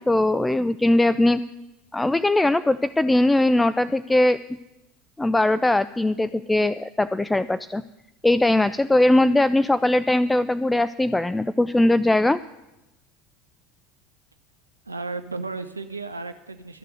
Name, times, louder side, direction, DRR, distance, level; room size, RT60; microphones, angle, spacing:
voice 1, 0.0-1.4 1.9-4.4 5.2-7.8 8.2-12.4, left 1 dB, 10° left, 13 dB, 0.3 m, -20 dB
voice 2, 14.9-16.8, right 3 dB, 85° right, 10 dB, 0.5 m, -34 dB
12.5 x 6.6 x 9.2 m, 0.95 s
figure-of-eight pair, 70°, 0 cm